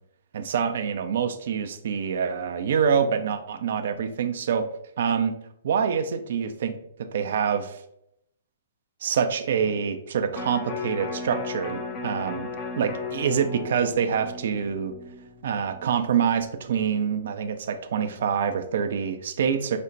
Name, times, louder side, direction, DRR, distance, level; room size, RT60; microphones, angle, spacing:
voice 1, 0.3-4.7 5.0-5.4 5.6-6.8 7.1-7.8 9.0-12.5 12.8-14.9 15.4-19.8, right 7 dB, 65° right, 8 dB, 0.4 m, -26 dB
Electric guitar, 10.3-16.6 17.0-17.1, left 4 dB, 30° left, 0.6 m, -36 dB
5.2 x 2.1 x 3.9 m, 0.76 s
hypercardioid pair, 125°, 0 cm